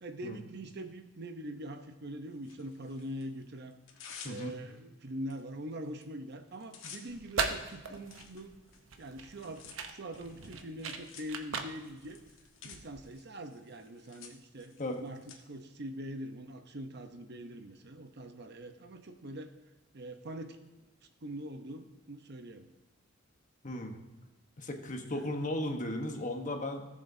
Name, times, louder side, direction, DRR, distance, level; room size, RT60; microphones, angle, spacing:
voice 1, 0.0-3.7 4.2-8.5 9.0-12.2 12.6-19.5 19.9-20.6 21.2-22.7 25.1-25.3, right 1 dB, 55° right, 6 dB, 0.8 m, -43 dB
Tearing, 2.4-3.3 3.7-4.8 5.3-5.4 5.7-6.0 6.3-15.4, left 6 dB, 90° left, 1.6 m, -53 dB
voice 2, 4.2-4.6 14.8-15.0 23.6-24.0 24.6-26.9, left 1 dB, 40° left, 4 dB, 1.2 m, -36 dB
sound 1, 7.1-13.1, right 5 dB, 85° right, 0.9 m, -39 dB
17.5 x 7.3 x 2.7 m, 1.1 s
head